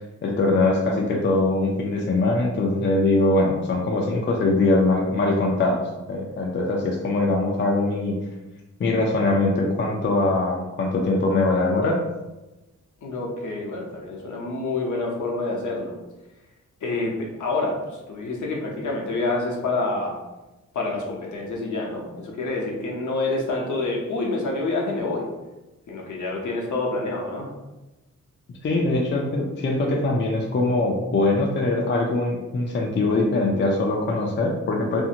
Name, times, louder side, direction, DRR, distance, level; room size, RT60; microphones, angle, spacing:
voice 1, 0.2-5.8 6.1-8.2 8.8-12.0 28.6-35.0, left 2 dB, 35° left, 0 dB, 0.4 m, -22 dB
voice 2, 13.0-16.0 16.8-17.8 18.1-20.2 20.7-25.3 25.9-27.5, left 2 dB, 70° left, -1 dB, 0.7 m, -27 dB
2.6 x 2.4 x 2.7 m, 1.0 s
wide cardioid pair, 120°, 31 cm